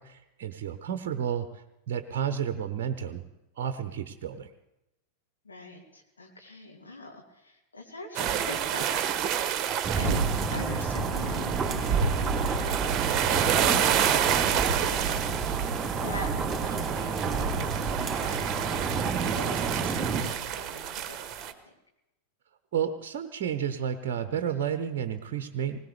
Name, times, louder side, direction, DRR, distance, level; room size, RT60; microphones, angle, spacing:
voice 1, 0.0-3.2 3.6-4.5 22.7-25.8, right 8 dB, 50° right, 9 dB, 0.8 m, -31 dB
voice 2, 5.4-9.2 10.0-10.2 10.5-12.8 13.1-18.9 19.3-21.3 21.6-21.7, left 2 dB, 75° left, 0 dB, 2.7 m, -43 dB
sound 1, 8.2-21.5, right 9 dB, 30° right, 1.2 m, -29 dB
sound 2, 9.8-20.2, right 4 dB, 15° right, 2.9 m, -29 dB
21.0 x 19.0 x 3.4 m, 0.93 s
figure-of-eight pair, 90°, 0 cm